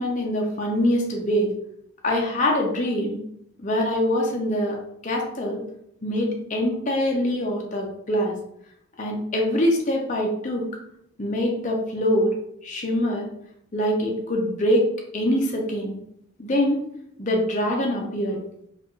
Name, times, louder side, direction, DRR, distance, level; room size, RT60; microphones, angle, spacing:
voice 1, 0.0-1.5 2.0-3.2 3.6-4.8 5.0-5.6 6.0-8.4 9.0-10.7 11.2-12.3 12.6-13.3 13.7-14.8 15.1-16.0 16.4-16.8 17.2-18.4, equal, 35° left, 0 dB, 0.5 m, -24 dB
4.2 x 2.4 x 3.1 m, 0.73 s
head